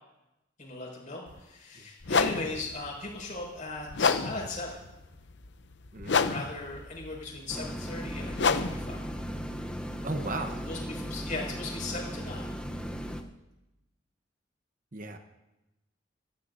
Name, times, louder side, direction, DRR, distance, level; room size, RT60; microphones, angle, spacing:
voice 1, 0.6-4.8 6.2-9.0 10.4-12.5, left 3 dB, 45° left, -2 dB, 5.9 m, -38 dB
sound 1, 1.3-1.4 2.0-10.9, left 5 dB, 70° left, 0.7 m, -31 dB
voice 2, 5.9-6.5 10.0-10.7 14.9-15.2, right 2 dB, 45° right, 6 dB, 1.0 m, -36 dB
sound 2, 7.5-13.2, equal, 5° left, 0.8 m, -37 dB
25.0 x 15.5 x 2.7 m, 0.97 s
head